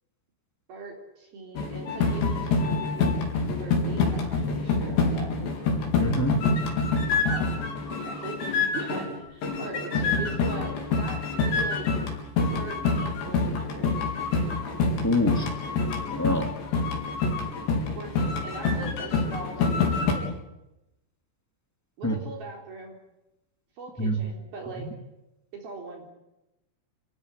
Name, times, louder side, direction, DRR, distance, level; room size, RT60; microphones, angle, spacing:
voice 1, 0.7-3.1 3.6-5.5 7.2-7.5 8.0-11.9 12.6-13.9 18.0-20.3 22.0-23.0 23.8-24.9 25.5-26.1, right 3 dB, 60° right, 1 dB, 5.5 m, -40 dB
sound 1, 1.6-9.2 9.4-20.1, left 4 dB, 80° left, 6.4 m, -26 dB
voice 2, 6.0-6.4 15.0-15.5 16.1-16.5 22.0-22.2 24.0-24.3 24.8-24.9, left 1 dB, 5° left, 6 dB, 1.6 m, -25 dB
29.0 x 16.5 x 9.8 m, 0.91 s
omnidirectional pair, 5.0 m